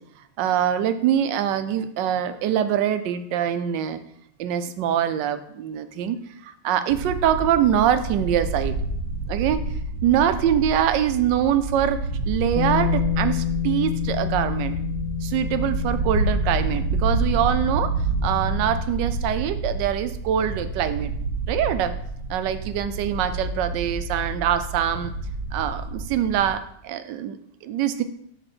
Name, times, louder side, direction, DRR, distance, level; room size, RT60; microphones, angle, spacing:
voice 1, 0.4-4.0 4.4-8.7 9.3-9.6 10.0-14.7 15.2-17.9 18.2-21.1 21.5-21.9 22.3-25.1 25.5-28.0, right 10 dB, 85° right, 11 dB, 1.3 m, -24 dB
sound 1, 6.9-26.5, right 3 dB, 65° right, 1.4 m, -28 dB
Bass guitar, 12.6-18.8, left 15 dB, 80° left, 1.2 m, -29 dB
8.1 x 3.5 x 6.0 m, 0.70 s
omnidirectional pair, 1.9 m